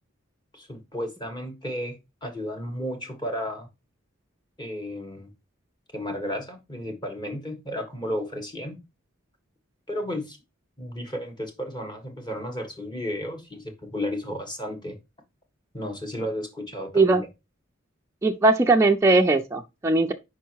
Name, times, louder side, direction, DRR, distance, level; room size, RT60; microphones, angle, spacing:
voice 1, 0.5-3.7 4.6-5.3 5.9-8.8 9.9-10.4 10.8-14.9 15.7-17.3, equal, 20° left, 1.5 m, -33 dB
voice 2, 18.2-20.1, right 2 dB, 15° right, 0.4 m, -19 dB
5.1 x 4.6 x 4.5 m
head